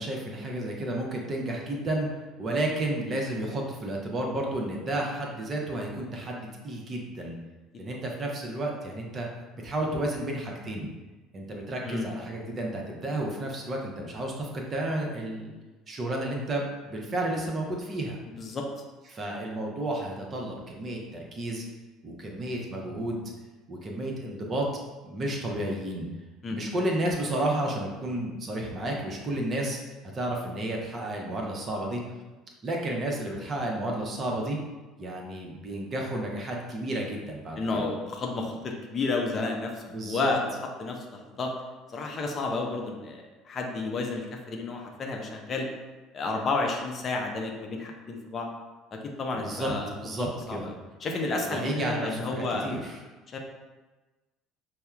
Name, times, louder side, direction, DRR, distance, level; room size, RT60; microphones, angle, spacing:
voice 1, 0.0-2.1 2.4-7.4 7.8-9.3 9.6-10.9 11.3-15.6 15.9-18.2 19.1-21.6 22.0-23.2 23.7-24.7 25.0-26.1 26.5-29.8 30.1-32.0 32.6-34.6 35.0-37.9 39.9-40.3 49.3-49.7 50.0-50.7 51.4-52.9, right 1 dB, 35° right, 0 dB, 0.6 m, -32 dB
voice 2, 37.6-40.4 40.8-41.5 41.9-45.7 46.1-48.5 48.9-50.1 50.5-50.7 51.0-52.7 53.3-53.4, left 3 dB, 35° left, 1 dB, 0.5 m, -31 dB
5.4 x 2.0 x 2.3 m, 1.2 s
figure-of-eight pair, 60°, 0 cm